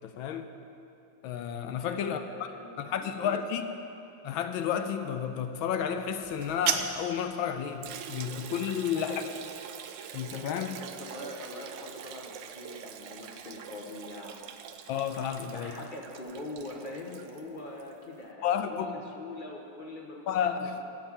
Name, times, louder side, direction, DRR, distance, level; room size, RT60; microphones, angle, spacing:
voice 1, 0.0-0.5 1.2-2.5 2.8-3.6 4.2-9.2 10.1-10.8 14.9-15.7 18.4-18.9 20.3-20.8, left 8 dB, 75° left, 8 dB, 1.3 m, -31 dB
voice 2, 1.8-3.4 8.8-9.3 10.8-14.5 15.4-20.2 20.6-20.8, left 2 dB, 30° left, 0 dB, 1.0 m, -43 dB
sound 1, 6.2-7.2, right 8 dB, 85° right, 1.6 m, -31 dB
Liquid, 7.8-17.9, right 8 dB, 70° right, 1.2 m, -45 dB
13.0 x 7.2 x 7.3 m, 2.9 s
omnidirectional pair, 2.3 m